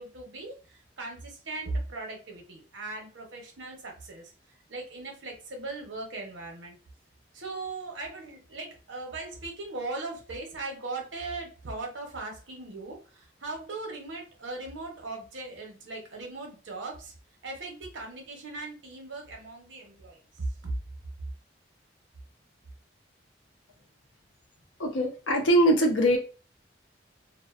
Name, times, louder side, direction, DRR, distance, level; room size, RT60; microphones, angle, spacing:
voice 1, 0.0-4.3 4.7-6.8 7.3-17.1 17.4-20.7, right 3 dB, 85° right, 1 dB, 0.8 m, -38 dB
voice 2, 24.8-26.2, right 1 dB, 90° left, 3 dB, 0.6 m, -22 dB
2.4 x 2.1 x 2.4 m, 0.34 s
head